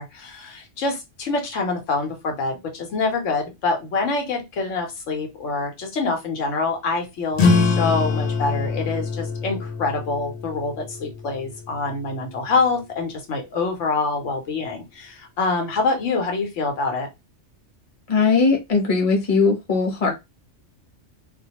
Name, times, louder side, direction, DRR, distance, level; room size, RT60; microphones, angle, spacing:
voice 1, 0.0-17.1, left 3 dB, 85° left, 1.1 m, -25 dB
sound 1, 7.3-12.4, left 4 dB, 70° left, 0.9 m, -24 dB
voice 2, 18.1-20.1, left 4 dB, 35° left, 0.8 m, -19 dB
2.4 x 2.2 x 2.8 m
omnidirectional pair, 1.2 m